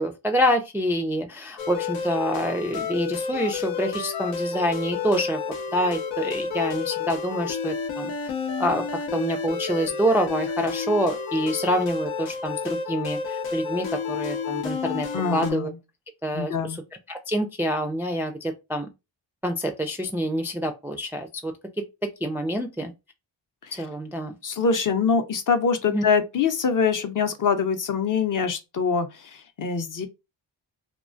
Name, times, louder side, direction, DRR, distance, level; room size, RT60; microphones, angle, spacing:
voice 1, 0.0-5.4 5.7-8.1 8.6-8.8 9.1-15.7 16.2-16.5 17.1-18.9 19.4-22.9 23.8-24.4 25.9-26.0, equal, 5° right, 0.3 m, -26 dB
sound 1, 1.6-15.5, left 6 dB, 90° left, 0.6 m, -30 dB
voice 2, 15.1-15.8 16.3-16.8 23.6-23.8 24.4-30.1, left 5 dB, 45° left, 0.6 m, -24 dB
2.4 x 2.2 x 2.5 m
supercardioid pair, 50°, 47 cm